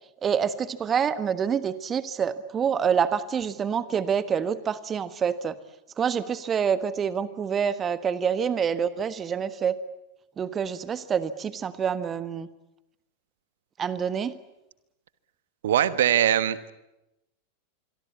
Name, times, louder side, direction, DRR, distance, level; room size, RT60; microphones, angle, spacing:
voice 1, 0.2-5.5 6.0-9.8 10.4-12.5 13.8-14.4, right 7 dB, 25° right, 15 dB, 1.4 m, -27 dB
voice 2, 15.6-16.7, right 10 dB, 60° right, 15 dB, 1.3 m, -22 dB
26.0 x 23.0 x 8.4 m, 0.91 s
figure-of-eight pair, 90°, 0 cm